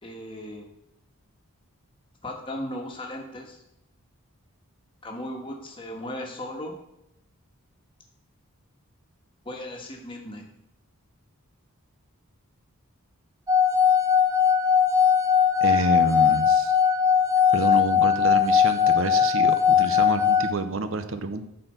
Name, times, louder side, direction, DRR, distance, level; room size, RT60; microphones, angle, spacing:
voice 1, 0.0-0.7 2.2-3.6 5.0-6.7 9.4-10.4 17.9-18.0, left 1 dB, 25° left, 1 dB, 1.5 m, -36 dB
sound 1, 13.5-20.5, left 7 dB, 15° right, 0.5 m, -20 dB
voice 2, 15.6-16.8 17.5-21.5, right 3 dB, 60° right, 10 dB, 0.7 m, -28 dB
9.5 x 4.4 x 6.8 m, 0.84 s
head